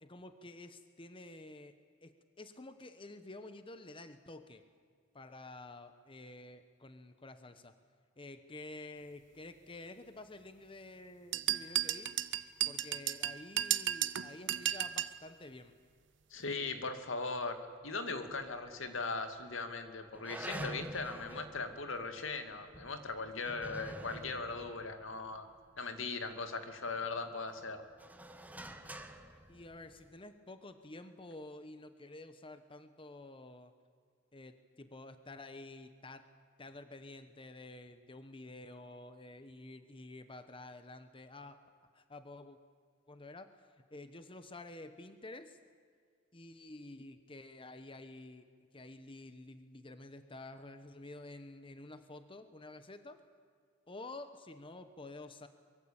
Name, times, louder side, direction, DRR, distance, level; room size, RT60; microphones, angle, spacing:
voice 1, 0.0-1.7 2.0-4.6 5.1-7.7 8.2-12.2 12.6-15.7 29.5-33.7 34.3-36.3 36.6-41.6 41.9-42.6 43.1-45.6 46.3-48.4 48.7-53.2 53.9-55.5, left 2 dB, 25° left, 9 dB, 1.0 m, -50 dB
sound 1, 11.3-15.2, right 12 dB, 65° right, 0.9 m, -34 dB
voice 2, 16.3-25.4 25.8-27.8, left 3 dB, 80° left, 7 dB, 2.4 m, -39 dB
sound 2, 18.3-19.0 19.4-19.5 20.1-26.3 26.8-30.2, right 1 dB, 10° right, 1.4 m, -48 dB
24.0 x 23.0 x 8.8 m, 2.1 s
head